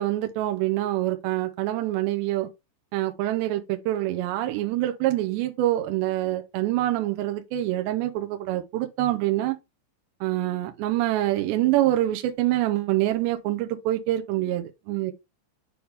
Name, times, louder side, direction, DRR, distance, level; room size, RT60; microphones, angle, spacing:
voice 1, 0.0-2.5 2.9-9.6 10.2-15.1, right 15 dB, 80° right, 2.8 m, -25 dB
8.8 x 3.7 x 3.4 m
omnidirectional pair, 5.5 m